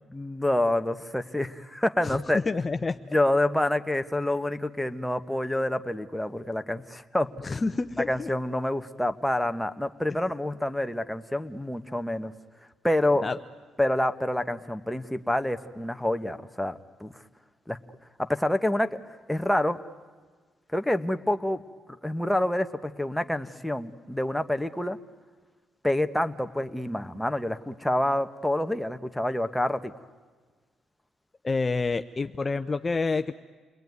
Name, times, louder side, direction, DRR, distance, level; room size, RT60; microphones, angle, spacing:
voice 1, 0.1-2.4 3.1-7.3 8.1-12.3 12.8-13.2 13.8-17.2 17.7-17.8 18.2-19.0 19.3-19.8 20.7-21.6 22.0-25.0 25.8-29.9, left 1 dB, 5° left, 8 dB, 1.2 m, -27 dB
voice 2, 2.0-3.0 7.4-8.3 13.2-13.4 31.4-33.3, left 3 dB, 25° left, 8 dB, 0.7 m, -28 dB
29.0 x 21.0 x 9.5 m, 1.5 s
cardioid pair, 90°, 0 cm